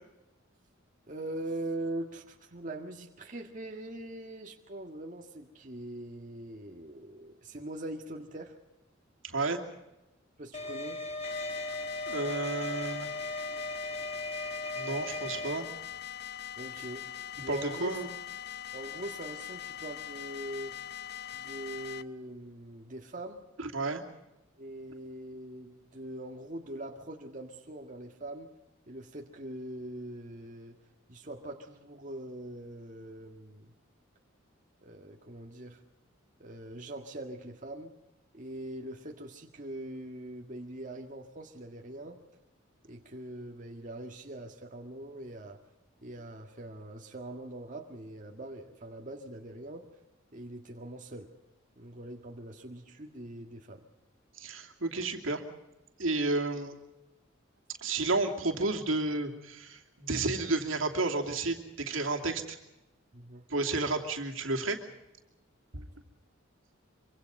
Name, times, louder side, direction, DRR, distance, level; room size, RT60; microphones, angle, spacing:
voice 1, 1.1-8.6 10.4-11.0 16.6-17.9 18.7-20.8 21.3-23.4 24.6-28.5 28.9-30.8 31.1-33.7 34.8-35.8 36.4-37.9 38.3-42.2 42.9-45.6 46.0-49.9 50.3-51.3 51.8-53.8 63.1-63.5, right 1 dB, 40° right, 1 dB, 1.8 m, -42 dB
voice 2, 9.2-9.6 12.1-13.1 14.7-15.7 17.5-18.1 23.6-24.0 54.4-55.4 56.0-56.7 57.8-62.6 63.5-64.8 65.7-65.8, right 3 dB, 75° right, 3 dB, 2.8 m, -31 dB
sound 1, 10.5-15.6, left 1 dB, 30° left, 1.6 m, -37 dB
sound 2, 11.2-22.0, left 10 dB, 50° left, 0.8 m, -42 dB
25.0 x 25.0 x 5.4 m, 0.96 s
head